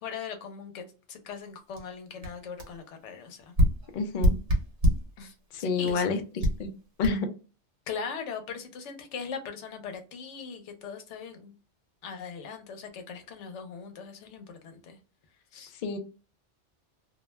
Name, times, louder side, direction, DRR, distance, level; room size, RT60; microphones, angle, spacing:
voice 1, 0.0-3.5 5.2-5.3 5.6-6.1 7.9-11.5 12.0-15.0 15.5-15.7, left 6 dB, 90° left, 1.0 m, -40 dB
sound 1, 1.8-1.9 2.2-2.3 2.6-2.8 3.6-5.1 5.9-6.0 6.4-6.7 7.0-7.1, equal, 55° right, 0.9 m, -25 dB
voice 2, 3.9-4.4 5.5-6.2 6.6-6.7 7.0-7.3 15.8-16.0, left 4 dB, 55° left, 0.5 m, -28 dB
2.4 x 2.1 x 3.1 m
omnidirectional pair, 1.2 m